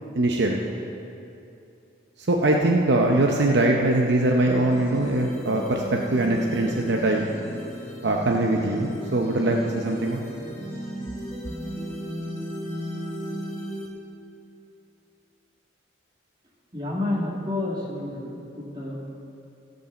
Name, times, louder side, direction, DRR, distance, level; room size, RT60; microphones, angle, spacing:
voice 1, 0.1-0.6 2.3-7.3 8.0-10.2, right 2 dB, 60° right, 0 dB, 0.7 m, -22 dB
sound 1, 4.3-13.9, equal, 15° left, 1.5 m, -35 dB
voice 2, 16.7-18.9, left 2 dB, 25° right, -4 dB, 2.1 m, -29 dB
15.5 x 5.4 x 6.8 m, 2.7 s
head